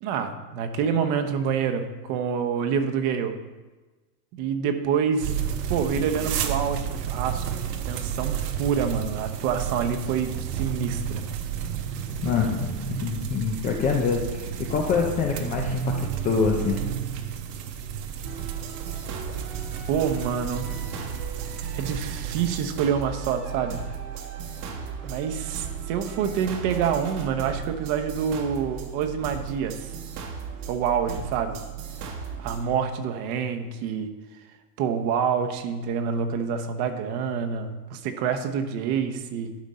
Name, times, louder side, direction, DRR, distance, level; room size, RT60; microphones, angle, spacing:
voice 1, 0.0-3.4 4.3-5.4 5.7-7.4 7.9-11.2 19.9-20.7 21.7-23.9 25.0-29.9 30.7-31.6 32.4-34.1 34.8-39.5, right 7 dB, 50° right, 6 dB, 1.0 m, -27 dB
sound 1, 5.2-22.6, right 8 dB, 85° right, 1.1 m, -31 dB
voice 2, 12.2-12.7 13.0-15.9 16.2-16.8, left 6 dB, 20° left, 0 dB, 0.4 m, -25 dB
sound 2, 18.2-32.7, right 7 dB, 65° right, 1.6 m, -36 dB
11.5 x 5.2 x 4.2 m, 1.2 s
supercardioid pair, 140°, 47 cm